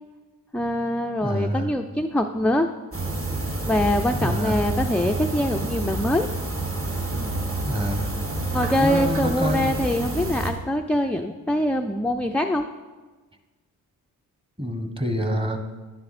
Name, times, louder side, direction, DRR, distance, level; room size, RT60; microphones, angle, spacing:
voice 1, 0.5-2.7 3.7-6.3 8.5-12.7, left 1 dB, 5° left, 4 dB, 0.4 m, -24 dB
voice 2, 1.2-1.7 4.2-4.7 7.6-8.1 8.8-9.8 14.6-15.6, equal, 15° right, 5 dB, 1.2 m, -26 dB
sound 1, 2.9-10.5, right 2 dB, 35° right, 1.7 m, -28 dB
11.0 x 9.6 x 4.2 m, 1.3 s
cardioid pair, 85°, 36 cm